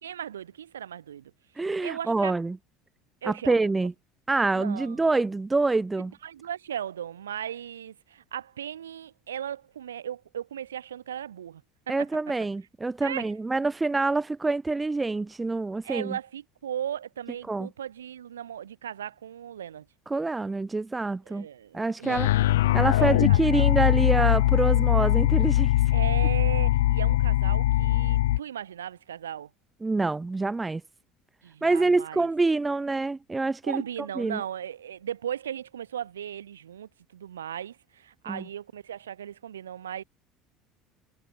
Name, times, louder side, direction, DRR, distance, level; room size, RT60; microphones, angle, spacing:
voice 1, 0.0-1.3 1.6-2.3 3.2-3.7 4.5-5.1 6.2-11.6 11.9-12.0 13.0-13.3 15.8-19.9 21.3-22.3 23.0-23.7 25.9-29.5 31.4-32.3 33.6-40.0, right 9 dB, 75° right, 5.1 m, -37 dB
voice 2, 1.6-2.6 3.2-3.9 4.3-6.1 11.9-16.2 17.5-17.7 20.1-21.5 21.7-22.3 22.7-25.7 29.8-30.8 31.6-33.8 34.2-34.4 38.3-38.4, right 3 dB, 15° right, 1.2 m, -26 dB
sound 1, 22.0-28.4, left 15 dB, 70° left, 1.4 m, -22 dB
figure-of-eight pair, 65°, 0 cm